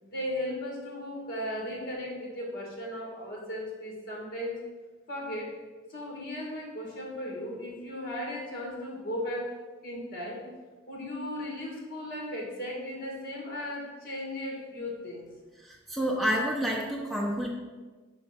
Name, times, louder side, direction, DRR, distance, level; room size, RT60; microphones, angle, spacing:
voice 1, 0.0-4.6 5.1-5.5 5.9-9.5 9.8-10.5 10.9-15.3, left 1 dB, 50° left, -2 dB, 2.1 m, -36 dB
voice 2, 15.6-17.5, equal, ahead, -4 dB, 0.7 m, -29 dB
5.8 x 4.4 x 5.7 m, 1.3 s
head